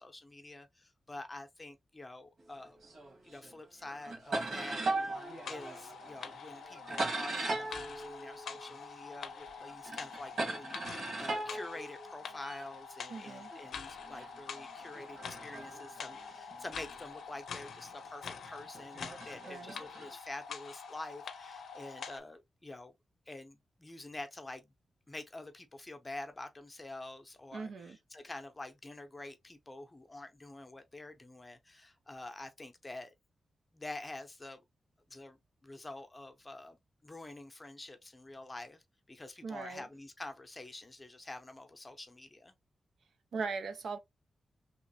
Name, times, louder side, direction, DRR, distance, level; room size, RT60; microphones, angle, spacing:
voice 1, 0.0-2.8 3.2-22.9 23.3-24.7 25.1-33.1 33.7-34.6 35.1-38.8 39.1-42.5, left 2 dB, 20° left, 0.7 m, -47 dB
sound 1, 2.8-3.5 3.8-9.1 9.4-12.7 13.4-16.9 17.6-17.8 18.7-20.1, right 2 dB, 65° right, 1.6 m, -39 dB
sound 2, 5.1-22.2, left 6 dB, 80° left, 0.5 m, -46 dB
voice 2, 13.1-13.5 19.5-19.8 27.5-28.0 39.4-39.8 43.3-44.0, right 4 dB, 85° right, 0.7 m, -39 dB
3.1 x 3.0 x 2.8 m
wide cardioid pair, 145°, 0 cm